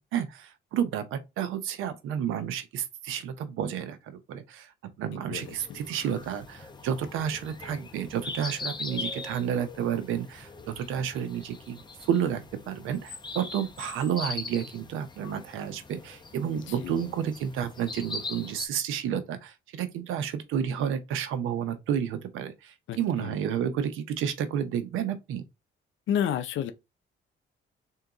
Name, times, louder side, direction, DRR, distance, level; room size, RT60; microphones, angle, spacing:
voice 1, 0.0-4.7 5.0-25.4, right 9 dB, 90° right, 0.7 m, -31 dB
voice 2, 5.1-5.8 16.7-17.1 22.9-23.4 26.1-26.7, left 9 dB, 75° left, 0.5 m, -31 dB
sound 1, 5.4-18.7, left 3 dB, 20° left, 0.8 m, -41 dB
3.8 x 2.8 x 3.5 m
cardioid pair, 90°, 20 cm